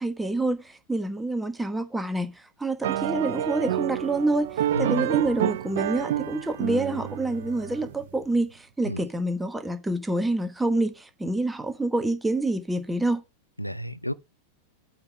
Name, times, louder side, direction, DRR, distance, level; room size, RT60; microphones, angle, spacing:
voice 1, 0.0-13.2, right 2 dB, 10° right, 1.2 m, -27 dB
sound 1, 2.8-8.1, right 12 dB, 55° right, 0.6 m, -29 dB
voice 2, 4.7-5.1 8.8-9.0 13.6-14.1, left 1 dB, 90° left, 0.4 m, -31 dB
8.7 x 3.9 x 6.1 m
figure-of-eight pair, 90°, 0 cm